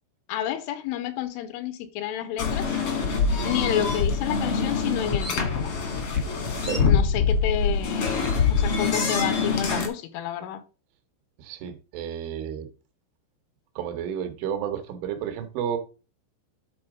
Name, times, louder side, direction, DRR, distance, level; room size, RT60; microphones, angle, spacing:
voice 1, 0.3-2.7 3.4-5.8 6.9-10.6, left 11 dB, 80° left, 3.1 m, -30 dB
sound 1, 2.4-9.9, left 5 dB, 60° left, 1.4 m, -24 dB
voice 2, 11.4-12.7 13.8-15.8, right 9 dB, 75° right, 3.4 m, -31 dB
9.9 x 4.3 x 4.8 m
omnidirectional pair, 5.9 m